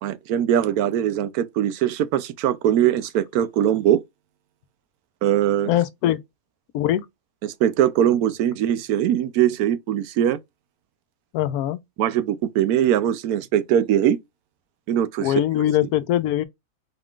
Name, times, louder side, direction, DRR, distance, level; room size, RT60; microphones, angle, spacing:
voice 1, 0.0-4.0 5.2-5.7 7.4-10.4 12.0-14.2 14.9-15.3, right 10 dB, 90° right, 1.1 m, -21 dB
voice 2, 5.6-6.2 6.7-7.1 11.3-11.8 15.2-16.5, left 12 dB, 85° left, 1.1 m, -22 dB
4.0 x 3.7 x 2.4 m
omnidirectional pair, 1.5 m